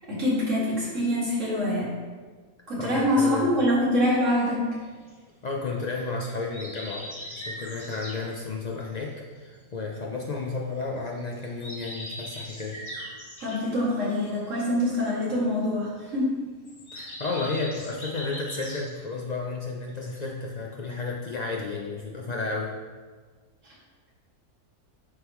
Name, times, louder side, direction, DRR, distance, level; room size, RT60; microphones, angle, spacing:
voice 1, 0.1-1.9 2.7-4.7 13.4-16.3 23.6-23.7, left 1 dB, 60° right, -7 dB, 2.4 m, -25 dB
voice 2, 2.8-3.6 5.4-7.0 7.3-12.8 16.9-22.7, left 3 dB, 70° left, -1 dB, 0.4 m, -32 dB
sound 1, 4.8-10.6 11.0-19.6 19.9-20.7, equal, 25° left, 0.9 m, -41 dB
9.8 x 3.7 x 3.0 m, 1.5 s
omnidirectional pair, 1.5 m